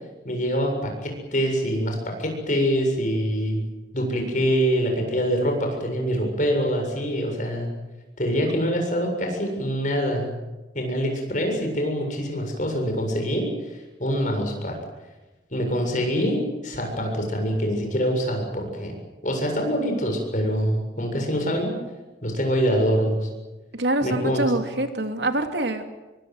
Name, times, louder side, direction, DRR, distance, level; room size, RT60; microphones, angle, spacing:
voice 1, 0.2-3.6 3.9-7.7 8.2-10.3 10.7-13.5 14.0-14.8 15.5-18.9 19.2-21.8 22.2-23.3 24.0-24.5, equal, 45° left, 3 dB, 7.5 m, -25 dB
voice 2, 23.7-25.8, right 1 dB, 70° right, 6 dB, 2.8 m, -25 dB
26.5 x 23.5 x 8.1 m, 1.1 s
head